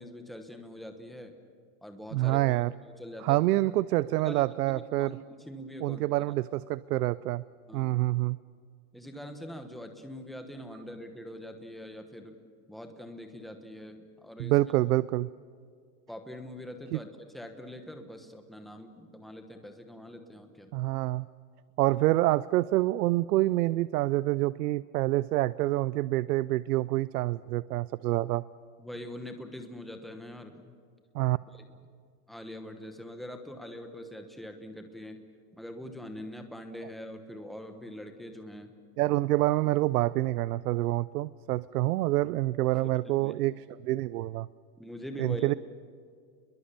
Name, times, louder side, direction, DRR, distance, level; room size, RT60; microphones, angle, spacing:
voice 1, 0.0-1.3 1.8-2.7 3.0-3.4 4.2-6.0 7.7-8.0 8.9-12.4 12.7-14.5 16.1-17.1 17.3-20.7 21.9-22.0 28.8-30.7 31.5-31.6 32.3-35.2 35.5-38.7 42.7-42.8 43.2-43.3 44.8-45.5, left 1 dB, ahead, 5 dB, 1.1 m, -43 dB
voice 2, 2.1-2.7 3.2-5.2 5.8-7.4 7.7-8.4 14.4-15.3 16.9-17.0 20.7-21.3 21.8-28.4 31.1-31.4 39.0-43.5 43.8-44.5 45.2-45.5, right 17 dB, 90° right, 18 dB, 0.7 m, -27 dB
29.5 x 22.0 x 6.9 m, 2.1 s
supercardioid pair, 175°, 45 cm